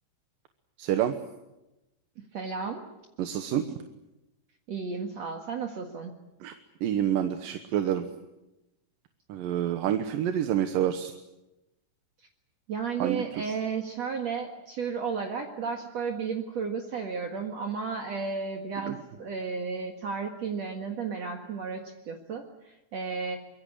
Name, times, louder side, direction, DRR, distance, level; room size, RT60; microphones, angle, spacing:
voice 1, 0.8-1.2 3.2-3.8 6.4-6.5 6.8-8.1 9.3-11.1 13.0-13.5 18.9-19.0, right 10 dB, 85° right, 8 dB, 2.9 m, -28 dB
voice 2, 2.3-2.8 4.7-6.1 12.7-23.4, right 5 dB, 55° right, 3 dB, 2.7 m, -33 dB
24.5 x 22.5 x 8.6 m, 0.96 s
omnidirectional pair, 3.8 m